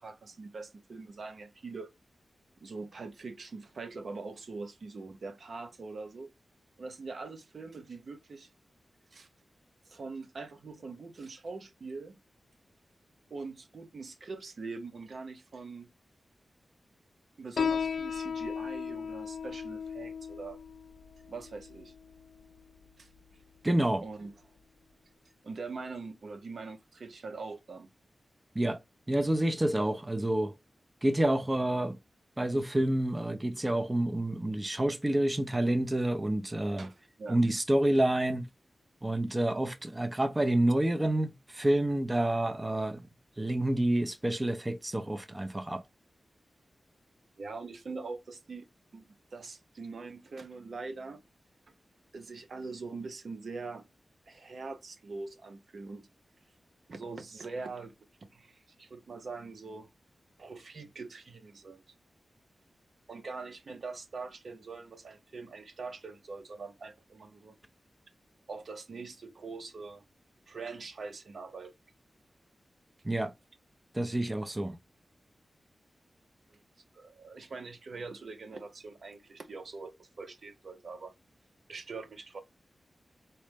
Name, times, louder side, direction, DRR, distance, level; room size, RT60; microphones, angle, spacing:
voice 1, 0.0-1.9 2.6-6.3 6.8-8.5 9.1-9.3 9.9-12.2 13.3-15.9 17.4-20.6 21.3-21.9 23.0-23.1 24.0-24.3 25.4-27.9 36.8-37.4 47.4-48.7 48.9-49.0 49.3-51.2 52.1-53.9 54.3-56.1 56.9-57.9 58.3-59.9 60.4-61.8 63.1-67.6 68.5-70.0 70.5-71.7 76.5-76.6 76.9-81.1 81.7-82.4, right 4 dB, 70° right, 0.6 m, -43 dB
Piano, 17.6-24.6, left 6 dB, 85° left, 0.3 m, -37 dB
voice 2, 23.6-24.0 28.6-28.8 29.1-30.5 31.0-32.0 32.4-36.9 37.3-38.5 39.0-43.0 43.4-45.8 73.0-73.3 73.9-74.8, right 1 dB, 25° right, 0.5 m, -28 dB
4.1 x 2.1 x 3.2 m
cardioid pair, 60°, 0 cm